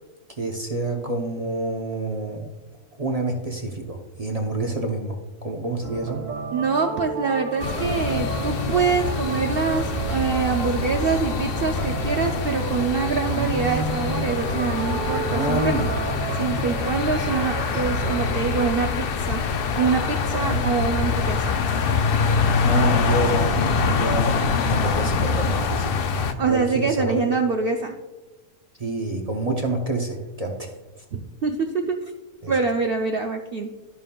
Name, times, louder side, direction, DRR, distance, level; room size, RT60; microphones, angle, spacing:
voice 1, 0.3-2.5 3.0-6.3 13.2-14.3 15.3-16.0 20.3-20.7 22.6-26.0 26.4-27.2 28.8-30.7 32.4-32.5, right 2 dB, 40° right, 1 dB, 0.6 m, -28 dB
sound 1, 5.8-18.8, right 5 dB, 65° right, 1.1 m, -32 dB
voice 2, 6.5-15.7 16.4-19.4 19.7-21.6 26.4-27.9 31.1-32.1 32.5-33.7, right 5 dB, 80° right, 4 dB, 0.5 m, -25 dB
sound 2, 7.6-26.3, left 5 dB, 75° left, 0.5 m, -25 dB
13.0 x 5.4 x 2.3 m, 1.1 s
omnidirectional pair, 1.6 m